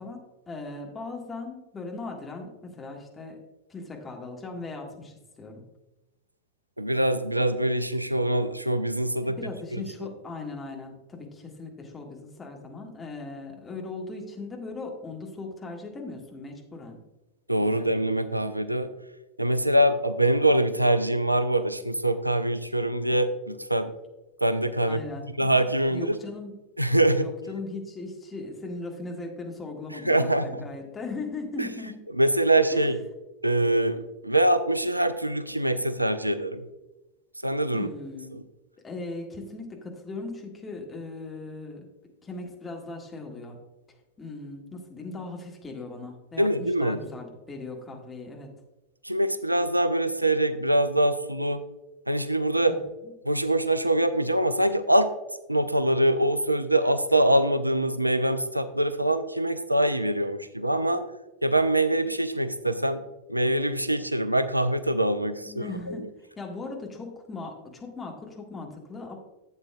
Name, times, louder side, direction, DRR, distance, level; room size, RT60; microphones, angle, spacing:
voice 1, 0.0-3.4 3.7-5.7 9.2-17.0 17.6-17.9 24.9-25.5 25.9-26.6 26.9-32.0 32.7-32.9 37.7-38.4 38.8-41.9 42.2-43.6 44.2-48.5 52.6-53.1 65.4-66.1 66.4-69.2, left 3 dB, 15° left, 1 dB, 1.7 m, -38 dB
voice 2, 6.8-9.4 10.0-10.1 17.5-18.9 19.4-23.9 24.4-25.0 25.4-26.2 26.8-27.2 29.9-30.6 31.6-31.7 32.2-33.0 33.4-36.6 37.4-37.9 38.3-38.4 46.4-47.0 49.0-51.6 52.1-52.8 53.3-55.1 55.5-61.0 61.4-63.0 63.3-66.1, right 1 dB, 85° right, 12 dB, 0.4 m, -24 dB
12.0 x 8.0 x 2.3 m, 1.0 s
figure-of-eight pair, 90°, 0 cm